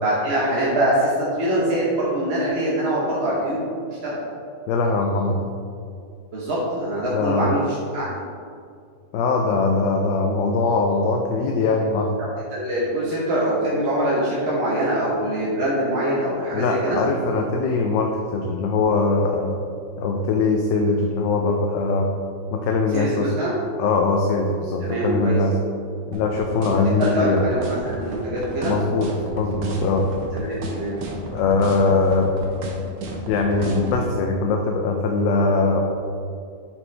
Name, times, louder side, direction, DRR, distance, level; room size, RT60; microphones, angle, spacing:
voice 1, 0.0-3.7 4.0-4.2 6.3-8.2 12.5-17.0 22.9-23.5 24.8-25.4 27.0-28.8 30.3-31.0, right 1 dB, 45° right, -7 dB, 1.1 m, -23 dB
voice 2, 4.7-5.4 7.1-7.5 9.1-12.2 16.5-19.5 20.0-22.1 22.5-23.3 23.8-25.5 26.1-27.4 28.6-29.1 29.4-30.1 31.3-32.3 33.3-35.8, left 3 dB, 90° left, 2 dB, 1.3 m, -21 dB
sound 1, 26.1-34.0, right 2 dB, 80° right, 1.5 m, -32 dB
8.5 x 4.4 x 3.3 m, 2.4 s
omnidirectional pair, 1.9 m